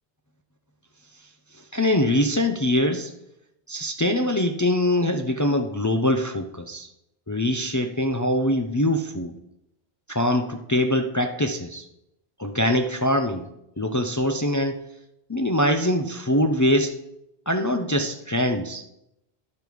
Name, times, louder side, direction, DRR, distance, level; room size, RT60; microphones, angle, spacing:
voice 1, 1.7-3.1 3.7-6.9 7.3-9.3 10.1-11.9 12.4-13.5 13.8-14.8 15.3-17.0 17.5-18.8, left 1 dB, 30° left, 5 dB, 0.3 m, -23 dB
12.0 x 5.3 x 4.6 m, 0.84 s
omnidirectional pair, 1.1 m